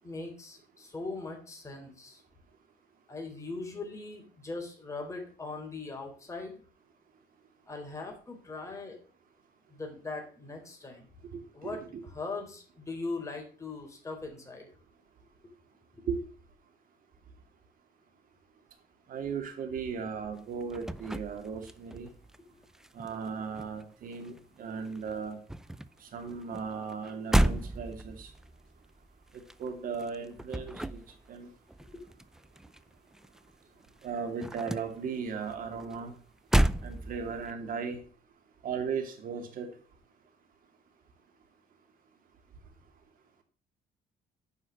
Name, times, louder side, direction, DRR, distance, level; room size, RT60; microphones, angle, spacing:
voice 1, 0.0-2.2 3.1-6.6 7.7-9.0 9.7-11.1 11.5-11.8 12.1-14.7 15.9-16.0 22.4-22.5 31.9-32.0, left 3 dB, 15° left, 1 dB, 3.9 m, -40 dB
voice 2, 11.3-12.0 16.1-16.2 19.1-22.1 22.9-25.4 26.0-28.3 29.6-31.0 31.3-31.5 34.0-36.1 36.8-38.0 38.6-39.7, right 6 dB, 55° right, 5 dB, 2.7 m, -36 dB
sound 1, 20.4-22.4 22.6-24.6 24.8-33.5 33.8-37.5, right 1 dB, 5° right, 0.5 m, -33 dB
9.5 x 5.7 x 7.3 m, 0.41 s
cardioid pair, 110°, 17 cm